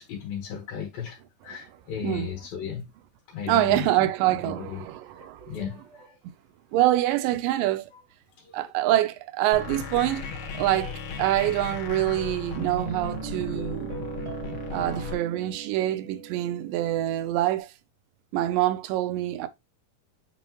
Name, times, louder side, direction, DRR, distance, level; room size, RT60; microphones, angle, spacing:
voice 1, 0.0-2.9 3.3-4.1 4.4-4.8 5.1-6.2 7.9-8.0 8.4-8.7, left 8 dB, 85° left, 3.2 m, -36 dB
voice 2, 2.0-2.4 3.5-5.6 6.7-7.9 8.5-10.3 10.6-13.9 14.7-17.7 18.3-19.5, right 14 dB, 80° right, 2.2 m, -25 dB
sound 1, 9.5-15.1, left 5 dB, 65° left, 2.1 m, -36 dB
Guitar, 12.5-17.6, right 8 dB, 35° right, 1.0 m, -39 dB
8.6 x 3.8 x 3.0 m
omnidirectional pair, 4.1 m